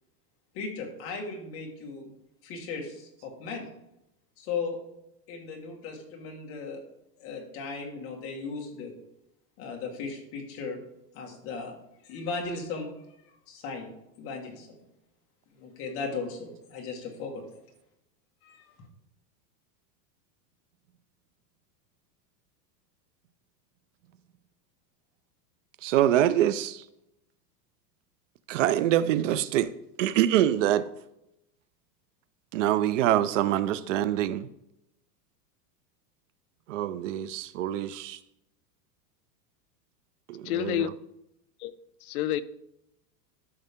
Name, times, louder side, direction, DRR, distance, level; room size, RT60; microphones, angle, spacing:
voice 1, 0.5-2.2 2.4-3.7 4.4-4.8 5.3-6.8 7.2-9.0 9.6-10.8 11.1-11.8 12.0-12.9 13.5-13.9 14.2-14.8 15.6-17.5 18.4-18.7, left 4 dB, 25° left, 1 dB, 1.7 m, -36 dB
voice 2, 25.8-26.8 28.5-29.7 30.0-30.9 32.5-34.5 36.7-38.2 40.3-40.9, right 12 dB, 50° right, 16 dB, 0.5 m, -25 dB
voice 3, 40.4-40.9 41.6-41.7 42.0-42.4, left 12 dB, 60° left, 13 dB, 0.6 m, -28 dB
13.5 x 5.4 x 3.6 m, 0.84 s
supercardioid pair, 175°, 50 cm